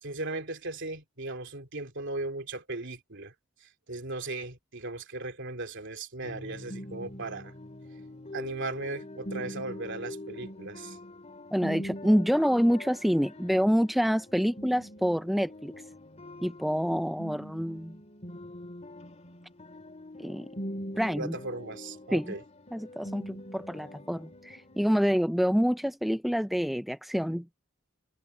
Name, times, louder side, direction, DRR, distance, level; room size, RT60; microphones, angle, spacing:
voice 1, 0.0-3.3 3.6-7.5 8.3-11.0 21.2-22.4, right 2 dB, 65° right, 3.2 m, -37 dB
sound 1, 6.2-25.0, left 1 dB, 35° left, 3.0 m, -43 dB
voice 2, 11.5-15.7 16.4-18.0 20.2-20.5 21.0-21.4 22.1-22.3 22.7-27.5, equal, ahead, 0.4 m, -27 dB
head